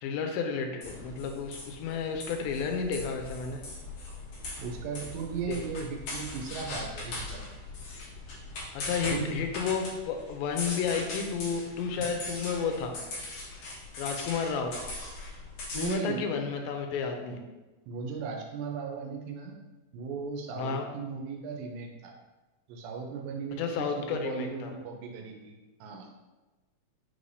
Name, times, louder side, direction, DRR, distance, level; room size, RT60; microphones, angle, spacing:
voice 1, 0.0-3.6 5.5-5.6 8.7-13.0 14.0-14.7 15.7-17.4 20.6-20.9 23.5-24.7, left 5 dB, 85° left, 4 dB, 2.3 m, -32 dB
sound 1, 0.8-16.0, left 2 dB, 65° left, 1.7 m, -40 dB
voice 2, 4.6-7.4 9.1-9.3 15.7-16.2 17.9-19.6 19.9-22.1 22.7-25.6 25.8-26.1, right 5 dB, 80° right, 1 dB, 2.3 m, -37 dB
5.5 x 3.2 x 2.6 m, 1.1 s
omnidirectional pair, 4.1 m